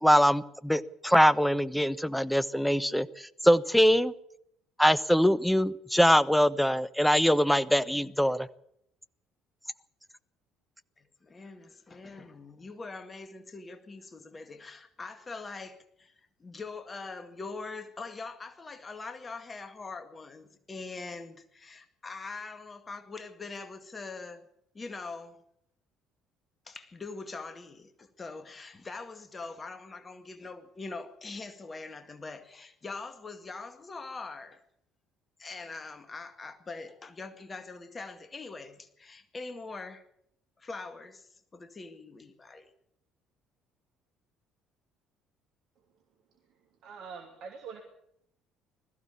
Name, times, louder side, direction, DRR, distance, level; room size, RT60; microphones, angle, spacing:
voice 1, 0.0-4.1 4.8-8.5, equal, 5° left, 1.1 m, -23 dB
voice 2, 11.0-24.5 24.7-25.4 26.7-34.6 35.4-40.0 40.6-42.7, left 3 dB, 30° left, 2.0 m, -43 dB
voice 3, 46.8-47.8, right 6 dB, 60° right, 2.8 m, -43 dB
20.5 x 14.5 x 8.5 m
figure-of-eight pair, 55°, 0 cm